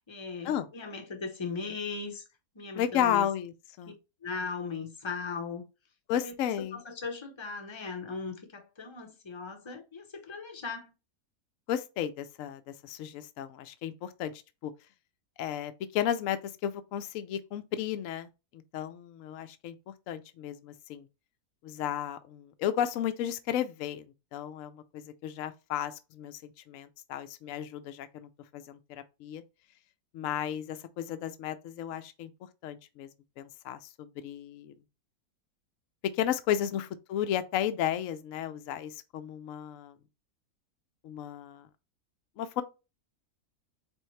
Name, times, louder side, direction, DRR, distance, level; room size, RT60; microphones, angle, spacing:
voice 1, 0.1-2.2 2.5-3.3 4.2-5.6 6.2-6.3 6.7-10.9, left 4 dB, 25° left, 0.7 m, -38 dB
voice 2, 2.7-3.9 6.1-6.8 11.7-14.7 15.4-21.1 21.6-24.1 24.3-29.4 30.1-33.1 33.4-34.7 36.1-40.0 41.0-41.7 42.4-42.6, left 10 dB, 70° left, 0.9 m, -34 dB
4.5 x 3.4 x 3.2 m
omnidirectional pair, 1.6 m